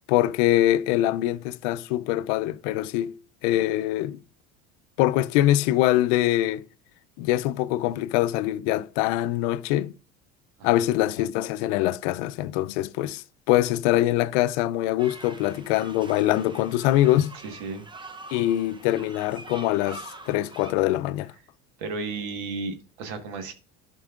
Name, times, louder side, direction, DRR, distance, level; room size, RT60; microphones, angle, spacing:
voice 1, 0.1-3.2 3.4-4.2 5.0-6.6 7.2-9.9 10.6-17.3 18.3-21.3, left 14 dB, 75° left, 0.5 m, -23 dB
sound 1, 15.0-20.7, right 2 dB, 15° right, 0.7 m, -44 dB
voice 2, 17.4-17.8 21.8-23.5, right 4 dB, 75° right, 1.5 m, -34 dB
11.5 x 5.3 x 2.4 m
supercardioid pair, 95°, 35 cm